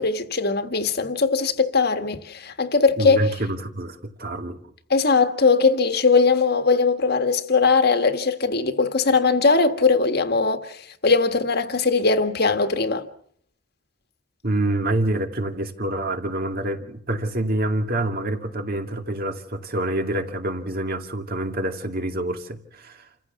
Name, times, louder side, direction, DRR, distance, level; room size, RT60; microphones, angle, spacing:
voice 1, 0.0-3.3 4.9-13.1, left 4 dB, 55° left, 1.7 m, -20 dB
voice 2, 3.0-4.6 14.4-23.1, right 1 dB, 50° right, 2.3 m, -27 dB
28.5 x 15.5 x 7.2 m
head